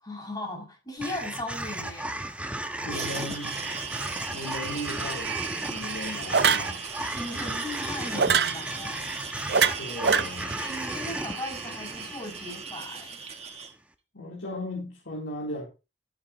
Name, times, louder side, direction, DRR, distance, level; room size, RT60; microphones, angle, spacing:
voice 1, 0.0-2.1 7.1-9.1 10.6-13.2, left 1 dB, 20° left, 0 dB, 6.8 m, -37 dB
sound 1, 1.0-13.3, right 1 dB, 5° right, 1.0 m, -35 dB
voice 2, 2.8-3.6 4.3-5.3 5.6-6.9 9.8-10.6 14.1-15.7, left 1 dB, 85° left, -3 dB, 3.5 m, -36 dB
sound 2, 2.9-13.7, right 5 dB, 35° right, 1.9 m, -38 dB
sound 3, 5.3-5.5 6.3-6.7 8.2-8.6 9.5-10.2, right 6 dB, 60° right, 0.7 m, -22 dB
13.5 x 11.0 x 3.0 m, 0.29 s
head